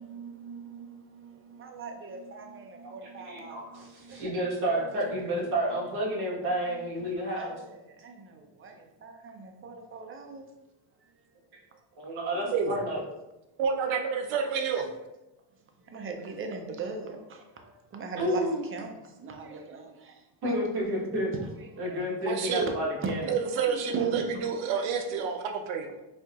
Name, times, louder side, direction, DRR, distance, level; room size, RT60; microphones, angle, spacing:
voice 1, 0.0-5.1 5.5-5.6 6.0-6.1 6.4-10.5 11.0-11.3 11.7-11.8 12.3-12.5 15.5-20.6 21.3-22.0 23.0-23.1 23.9-24.3, right 4 dB, 25° right, 4 dB, 0.5 m, -41 dB
voice 2, 3.2-7.5 12.0-13.0 18.2-18.6 20.4-21.3 21.8-23.2, equal, 50° right, -4 dB, 1.4 m, -30 dB
voice 3, 13.6-14.9 22.2-22.6 23.3-25.9, right 6 dB, 70° right, 4 dB, 0.7 m, -29 dB
4.3 x 2.8 x 2.4 m, 0.94 s
cardioid pair, 120°, 49 cm